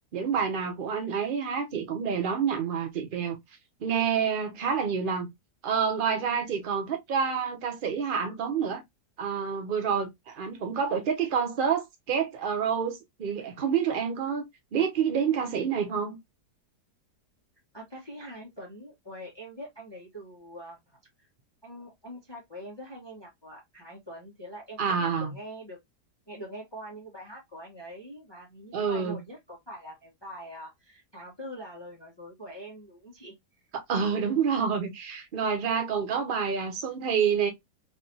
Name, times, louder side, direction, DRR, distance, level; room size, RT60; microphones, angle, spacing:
voice 1, 0.1-3.4 3.8-5.3 5.6-8.8 9.2-14.4 14.7-16.2 24.8-25.3 28.7-29.2 33.7-37.5, right 6 dB, 80° right, 0.4 m, -28 dB
voice 2, 17.7-20.8 21.2-21.3 21.6-25.8 26.3-33.3, equal, 20° left, 0.8 m, -44 dB
3.2 x 2.7 x 2.6 m
omnidirectional pair, 1.7 m